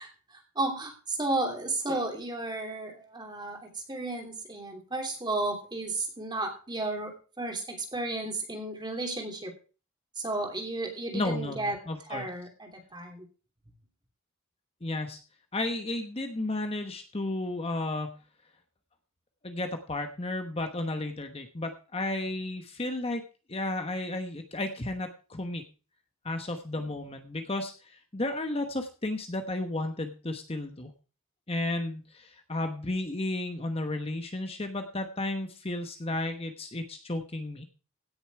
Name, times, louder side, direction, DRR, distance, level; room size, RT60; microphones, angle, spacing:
voice 1, 0.0-9.5 10.2-11.8 12.1-13.3 26.8-27.0, right 2 dB, 20° right, 3 dB, 3.0 m, -33 dB
voice 2, 11.1-12.3 14.8-15.2 15.5-18.2 19.4-23.2 23.5-25.6 26.2-30.9 31.5-37.6, left 2 dB, 30° left, 6 dB, 1.1 m, -33 dB
17.0 x 7.0 x 4.8 m, 0.36 s
head